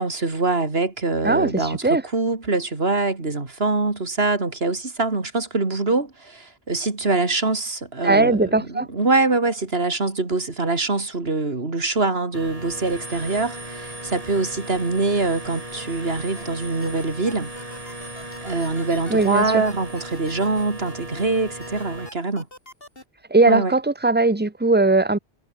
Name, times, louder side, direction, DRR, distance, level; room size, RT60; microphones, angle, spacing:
voice 1, 0.0-1.8 2.1-17.5 18.4-22.5 23.5-23.7, right 3 dB, 70° right, 3.2 m, -24 dB
voice 2, 1.2-2.0 8.0-8.9 19.1-19.6 23.3-25.2, right 2 dB, 10° right, 1.1 m, -19 dB
sound 1, 12.3-22.1, right 1 dB, 35° right, 6.0 m, -37 dB
sound 2, 15.8-16.4 16.8-21.2 21.6-23.0, left 1 dB, 60° left, 7.1 m, -43 dB
omnidirectional pair, 1.1 m